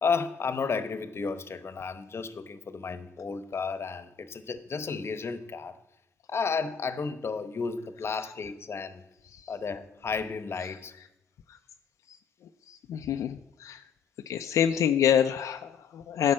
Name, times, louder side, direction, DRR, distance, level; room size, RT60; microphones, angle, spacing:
voice 1, 0.0-5.8 6.3-9.0 9.5-10.9, left 5 dB, 55° left, 12 dB, 0.9 m, -32 dB
voice 2, 10.6-11.1 11.5-11.6 12.1-12.2 12.7-13.9 14.3-16.3, left 9 dB, 85° left, 6 dB, 0.4 m, -28 dB
10.0 x 5.4 x 7.5 m, 0.90 s
cardioid pair, 55°, 5 cm